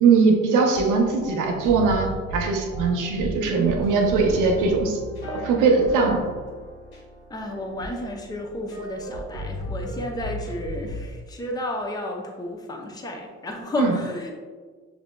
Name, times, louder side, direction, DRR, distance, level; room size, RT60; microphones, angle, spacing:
voice 1, 0.0-5.0 5.3-6.2 13.8-14.0, right 4 dB, 90° right, 1 dB, 0.7 m, -20 dB
sound 1, 0.7-11.1, equal, 85° left, 1.1 m, -35 dB
voice 2, 7.3-14.3, left 1 dB, 15° left, 1 dB, 0.6 m, -32 dB
6.0 x 2.6 x 2.2 m, 1.5 s
cardioid pair, 90°, 30 cm